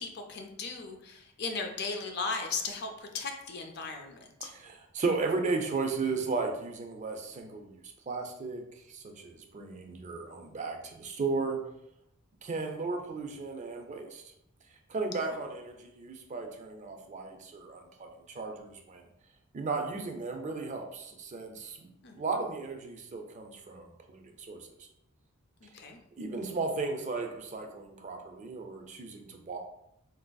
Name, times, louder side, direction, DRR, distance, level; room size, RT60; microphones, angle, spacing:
voice 1, 0.0-4.5 15.2-15.4 22.0-22.2 25.6-26.0, left 4 dB, 50° left, 4 dB, 0.4 m, -37 dB
voice 2, 4.4-7.8 8.1-11.6 12.4-14.2 14.9-19.1 19.5-24.9 26.2-29.6, right 3 dB, 30° right, 3 dB, 0.4 m, -35 dB
3.9 x 2.5 x 2.2 m, 0.78 s
head